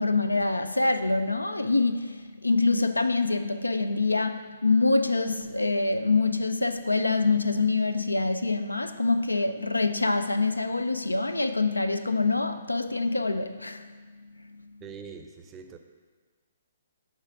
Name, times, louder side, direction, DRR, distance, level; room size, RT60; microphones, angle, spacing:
voice 1, 0.0-14.7, left 3 dB, 85° left, 10 dB, 0.3 m, -25 dB
voice 2, 14.8-15.8, right 6 dB, 20° right, 6 dB, 0.5 m, -43 dB
5.5 x 3.8 x 5.9 m, 1.5 s
figure-of-eight pair, 125°, 0 cm